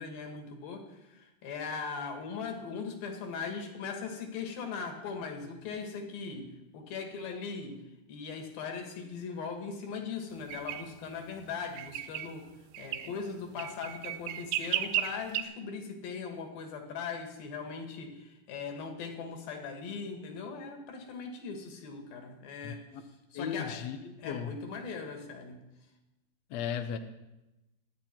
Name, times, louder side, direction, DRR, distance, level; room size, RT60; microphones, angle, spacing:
voice 1, 0.0-7.8 8.1-12.5 12.8-22.9 23.3-23.9 24.2-25.6, left 5 dB, 65° left, 4 dB, 3.5 m, -39 dB
sound 1, 10.5-10.8 11.8-12.3 12.8-13.1 13.6-15.4, right 12 dB, 80° right, 2.4 m, -33 dB
voice 2, 23.3-24.0 24.2-24.5 26.5-27.0, left 8 dB, 85° left, 7 dB, 1.5 m, -35 dB
26.0 x 10.0 x 4.5 m, 0.98 s
omnidirectional pair, 4.7 m